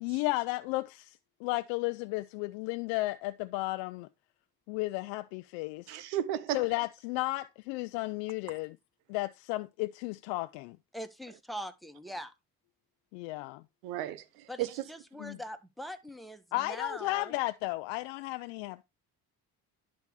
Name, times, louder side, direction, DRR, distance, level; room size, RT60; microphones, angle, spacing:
voice 1, 0.0-4.1 4.7-6.0 6.5-8.8 9.1-10.8 13.1-13.6 15.2-15.4 16.5-18.8, left 20 dB, 85° left, 0.6 m, -34 dB
voice 2, 5.9-6.6 13.8-14.8, right 12 dB, 90° right, 0.9 m, -34 dB
voice 3, 10.9-12.3 14.5-17.3, equal, ahead, 1.7 m, -42 dB
11.0 x 4.1 x 4.7 m
hypercardioid pair, 50°, 46 cm